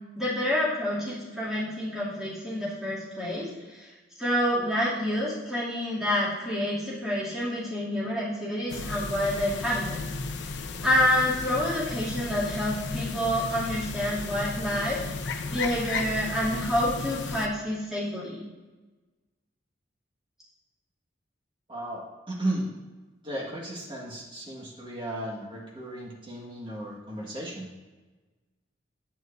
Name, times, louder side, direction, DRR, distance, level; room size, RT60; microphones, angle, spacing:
voice 1, 0.2-3.9 4.2-10.0 10.8-15.0 15.5-18.4, left 1 dB, ahead, -10 dB, 2.6 m, -28 dB
sound 1, 8.7-17.5, left 4 dB, 75° left, 0.6 m, -34 dB
voice 2, 21.7-22.7 23.2-27.7, right 1 dB, 25° right, -3 dB, 1.6 m, -35 dB
9.3 x 9.1 x 2.6 m, 1.2 s
head